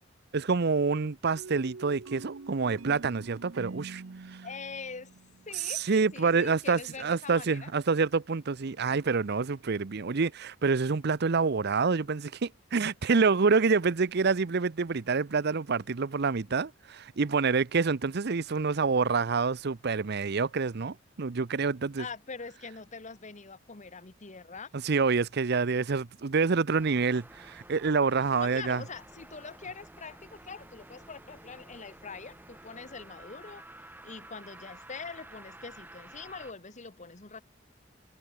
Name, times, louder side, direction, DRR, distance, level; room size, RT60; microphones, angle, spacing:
voice 1, 0.3-4.0 5.6-22.0 24.8-28.8, right 4 dB, 55° right, 0.7 m, -27 dB
sound 1, 1.3-6.0, right 3 dB, 90° right, 0.8 m, -45 dB
voice 2, 4.4-5.1 5.4-7.7 22.0-24.7 28.4-33.6 34.0-37.4, left 4 dB, 40° left, 1.3 m, -43 dB
sound 2, 26.7-36.5, right 1 dB, 10° right, 3.2 m, -51 dB
head